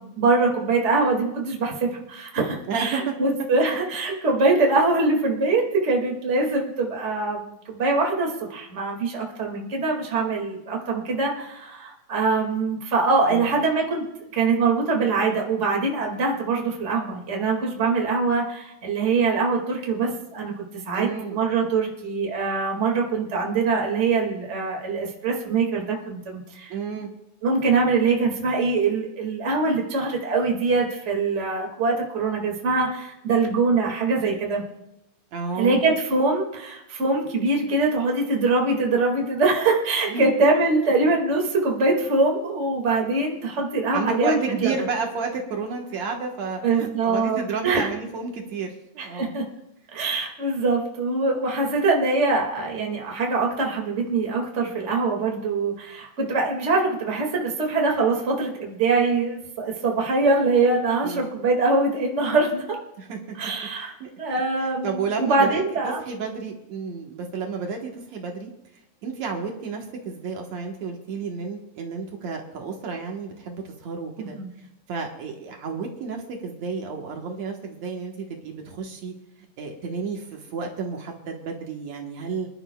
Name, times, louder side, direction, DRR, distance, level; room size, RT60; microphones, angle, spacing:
voice 1, 0.0-14.0 14.3-26.7 27.4-34.6 35.6-44.8 46.6-47.9 49.0-49.5 49.9-62.8 63.4-63.9 64.2-66.0 74.2-74.5, right 3 dB, 25° right, 0 dB, 2.0 m, -23 dB
voice 2, 2.7-3.1 13.3-13.5 20.9-21.4 26.7-27.1 35.3-35.8 40.1-40.3 43.9-48.7 48.9-49.4 61.0-61.3 63.0-63.2 64.0-64.1 64.8-68.5 69.0-74.4 74.9-79.1 79.6-82.5, right 4 dB, 70° right, 1 dB, 2.5 m, -31 dB
26.5 x 11.0 x 2.3 m, 0.87 s
omnidirectional pair, 3.4 m